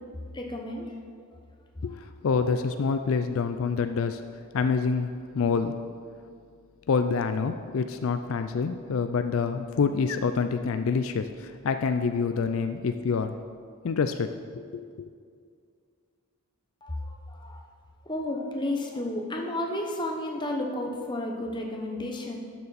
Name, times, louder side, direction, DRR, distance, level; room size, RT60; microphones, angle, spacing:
voice 1, 0.3-0.9 16.8-17.6 18.1-22.4, left 1 dB, 20° left, 1 dB, 0.9 m, -32 dB
voice 2, 1.8-4.2 4.5-5.8 6.9-13.4 13.8-15.1, left 5 dB, 70° left, 8 dB, 0.4 m, -27 dB
12.0 x 6.9 x 4.1 m, 2.1 s
head